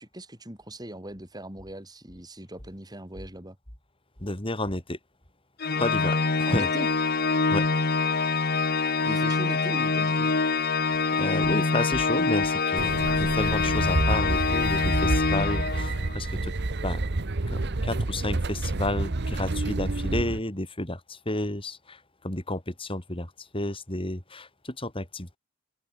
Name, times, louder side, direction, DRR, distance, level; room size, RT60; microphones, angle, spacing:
voice 1, 0.0-3.6 6.5-6.9 9.0-10.3, right 1 dB, 20° right, 4.5 m, -39 dB
voice 2, 4.2-5.0 5.8-6.7 7.5-7.7 11.1-13.0 13.3-16.5 16.8-17.0 17.5-22.0 22.2-23.3 23.5-25.4, left 1 dB, 25° left, 5.7 m, -31 dB
Organ, 5.6-16.2, left 4 dB, 50° left, 1.7 m, -25 dB
sound 1, 12.8-20.4, right 2 dB, 55° right, 1.0 m, -29 dB
open air
head